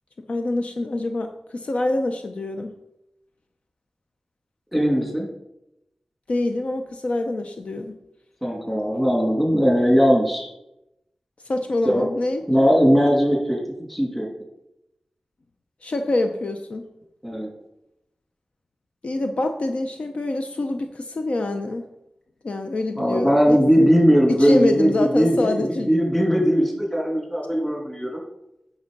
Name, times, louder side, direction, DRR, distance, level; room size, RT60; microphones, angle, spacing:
voice 1, 0.3-2.7 6.3-7.9 11.5-12.5 15.8-16.8 19.0-21.9 22.4-23.9 24.3-25.9, left 2 dB, 60° left, 5 dB, 0.7 m, -25 dB
voice 2, 4.7-5.3 8.4-10.5 11.8-12.1 12.5-14.3 17.2-17.5 23.0-28.2, equal, 5° left, 0 dB, 2.6 m, -19 dB
8.8 x 5.5 x 5.4 m, 0.86 s
wide cardioid pair, 95°, 2 cm